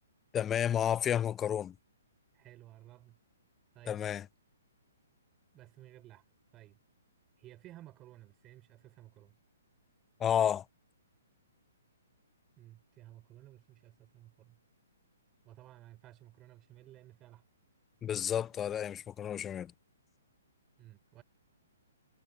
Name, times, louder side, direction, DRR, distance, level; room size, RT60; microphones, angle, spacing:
voice 1, 0.3-1.7 3.9-4.2 10.2-10.6 18.0-19.7, left 9 dB, 15° left, 0.6 m, -31 dB
voice 2, 2.3-3.2 3.7-4.0 5.5-6.2 6.5-6.8 7.4-9.4 12.6-14.6 15.4-17.4 20.8-21.2, right 14 dB, 25° right, 4.8 m, -55 dB
figure-of-eight pair, 125°, 0 cm